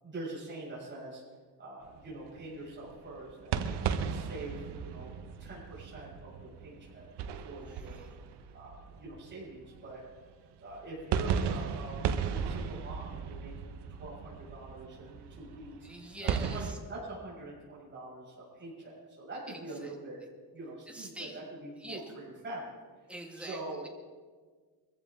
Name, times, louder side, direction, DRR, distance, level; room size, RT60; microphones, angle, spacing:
voice 1, 0.0-1.2 1.6-5.1 5.4-7.1 7.4-8.1 8.3-10.0 10.6-15.8 16.4-20.2 20.5-22.0 22.4-22.7 23.4-23.8, right 2 dB, 30° right, -7 dB, 6.4 m, -44 dB
sound 1, 1.9-10.2 10.7-16.7, right 7 dB, 90° right, 1.0 m, -36 dB
voice 2, 7.4-8.1 15.8-16.8 19.5-20.0 20.2-20.3 20.9-21.4 21.8-22.0 23.1-23.9, right 1 dB, 5° right, 1 dB, 1.8 m, -45 dB
23.0 x 15.0 x 3.7 m, 1.5 s
cardioid pair, 165°, 39 cm